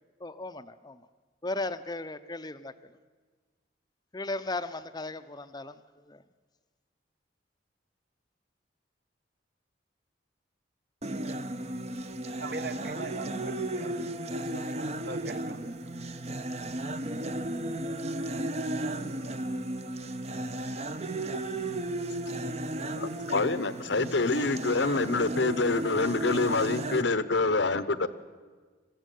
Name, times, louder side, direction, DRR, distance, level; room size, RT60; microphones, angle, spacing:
voice 1, 0.2-1.0 1.4-2.7 4.1-5.8 6.1-6.2, left 2 dB, 20° left, 12 dB, 0.6 m, -36 dB
sound 1, 11.0-27.0, right 1 dB, 35° right, 0.9 m, -34 dB
voice 2, 12.4-15.7, right 3 dB, 60° right, 10 dB, 1.4 m, -41 dB
voice 3, 23.0-28.1, left 3 dB, 75° left, 14 dB, 1.0 m, -26 dB
21.5 x 15.0 x 9.2 m, 1.5 s
head